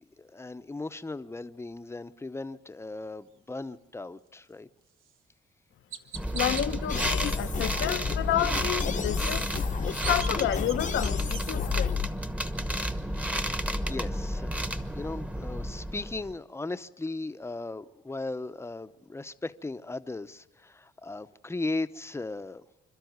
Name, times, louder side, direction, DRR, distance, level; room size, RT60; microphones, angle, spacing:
voice 1, 0.2-4.7 13.6-14.6 14.9-22.6, left 2 dB, 15° left, 0.8 m, -37 dB
Chirp tweet, 5.0-5.2 5.9-6.7 9.6-11.4, right 7 dB, 90° right, 1.2 m, -41 dB
sound 1, 6.1-16.3, equal, 5° right, 1.1 m, -32 dB
voice 2, 6.3-9.5 9.9-12.0, left 12 dB, 75° left, 0.9 m, -30 dB
sound 2, 6.9-12.1, left 6 dB, 40° left, 0.9 m, -32 dB
27.5 x 12.5 x 9.4 m
cardioid pair, 90°, 20 cm